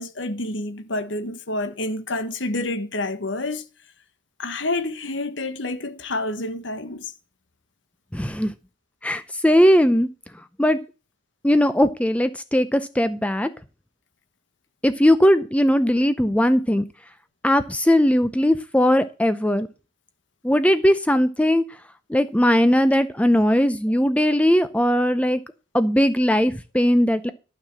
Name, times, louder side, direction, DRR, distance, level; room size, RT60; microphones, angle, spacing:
voice 1, 0.0-3.6 4.4-7.1, left 2 dB, 70° left, 1.4 m, -28 dB
voice 2, 8.1-8.5 9.0-10.1 10.6-10.8 11.4-13.5 14.8-16.8 17.4-19.7 20.4-21.6 22.1-25.4 25.7-27.3, equal, 5° left, 0.6 m, -19 dB
12.0 x 5.7 x 7.4 m
head